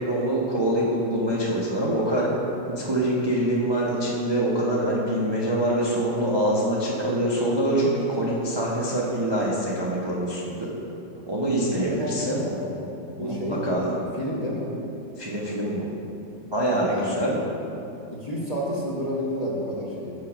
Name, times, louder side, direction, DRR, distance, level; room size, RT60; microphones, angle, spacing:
voice 1, 0.1-2.3 2.7-10.7 11.3-12.5 13.2-13.9 15.2-15.9 16.4-17.4, right 1 dB, 40° right, -5 dB, 0.3 m, -25 dB
voice 2, 11.7-12.8 13.2-14.7 16.9-17.2 18.1-20.1, equal, 30° left, -5 dB, 0.8 m, -30 dB
7.3 x 6.4 x 5.0 m, 2.8 s
omnidirectional pair, 2.1 m